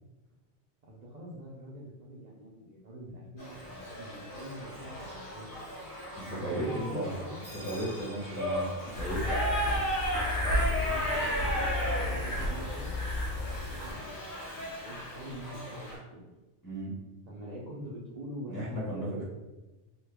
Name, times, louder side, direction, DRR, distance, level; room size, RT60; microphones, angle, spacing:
voice 1, 0.9-5.5 6.3-7.4 10.5-16.2 17.3-19.3, right 1 dB, 50° right, -5 dB, 0.5 m, -45 dB
Shout / Livestock farm animals working animals, 3.4-16.0, equal, 50° left, 1.3 m, -36 dB
voice 2, 6.1-7.3 7.6-9.4 16.6-16.9 18.5-19.3, right 1 dB, 20° left, -7 dB, 0.9 m, -35 dB
sound 1, 8.9-13.9, left 1 dB, 75° left, 1.2 m, -32 dB
3.0 x 2.2 x 3.3 m, 1.1 s
omnidirectional pair, 1.2 m